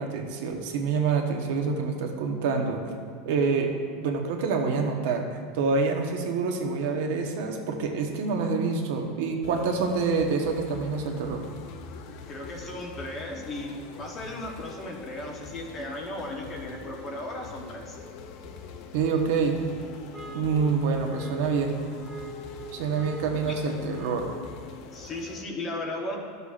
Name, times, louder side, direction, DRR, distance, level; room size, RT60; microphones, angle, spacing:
voice 1, 0.0-2.9 3.2-3.7 4.0-11.4 18.9-19.6 20.3-21.8 22.7-24.3, right 5 dB, 65° right, 3 dB, 1.0 m, -27 dB
sound 1, 9.4-25.4, left 5 dB, 45° left, 0.5 m, -44 dB
voice 2, 12.3-18.0 23.4-23.5 24.9-26.2, left 1 dB, 20° left, 0 dB, 0.9 m, -36 dB
sound 2, 20.1-24.5, right 2 dB, 5° right, 0.6 m, -43 dB
13.0 x 6.7 x 2.5 m, 2.3 s
supercardioid pair, 175°, 0 cm